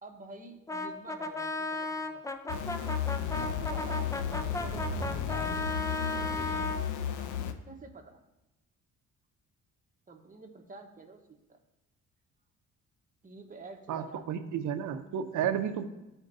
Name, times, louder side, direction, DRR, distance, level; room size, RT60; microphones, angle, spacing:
voice 1, 0.0-2.5 3.4-5.5 6.0-7.3 7.7-8.2 10.1-11.2 11.5-11.6 13.2-14.3, right 3 dB, 25° right, 3 dB, 1.0 m, -49 dB
Brass instrument, 0.7-6.8, left 2 dB, 10° left, 0.5 m, -35 dB
sound 1, 2.5-7.5, left 7 dB, 80° left, 0.6 m, -34 dB
voice 2, 13.9-15.8, right 8 dB, 75° right, 9 dB, 0.7 m, -32 dB
13.0 x 4.5 x 2.6 m, 0.97 s
cardioid pair, 90°, 30 cm